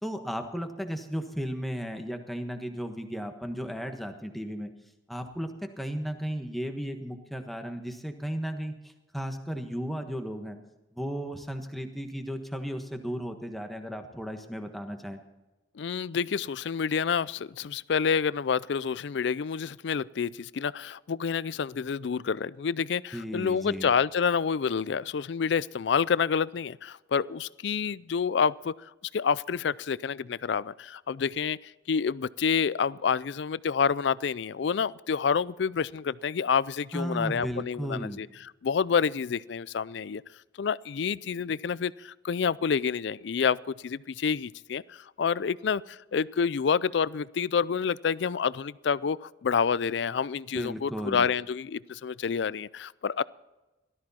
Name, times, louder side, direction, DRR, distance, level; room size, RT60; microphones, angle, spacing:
voice 1, 0.0-4.7 5.1-10.6 10.9-15.2 23.1-23.9 36.9-38.2 50.5-51.3, equal, ahead, 5 dB, 1.3 m, -35 dB
voice 2, 15.8-38.3 38.6-40.2 40.6-53.2, left 6 dB, 65° left, 20 dB, 0.4 m, -28 dB
17.0 x 13.0 x 4.3 m, 1.0 s
head